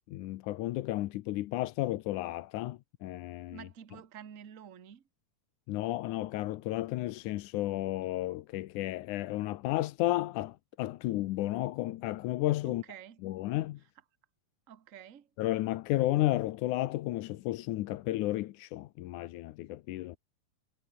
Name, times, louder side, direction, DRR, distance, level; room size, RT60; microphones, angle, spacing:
voice 1, 0.1-3.7 5.7-12.8 13.2-13.8 15.4-20.2, left 16 dB, 85° left, 2.3 m, -32 dB
voice 2, 3.5-5.0 12.6-13.2 14.7-15.3, right 9 dB, 45° right, 1.0 m, -49 dB
omnidirectional pair, 3.5 m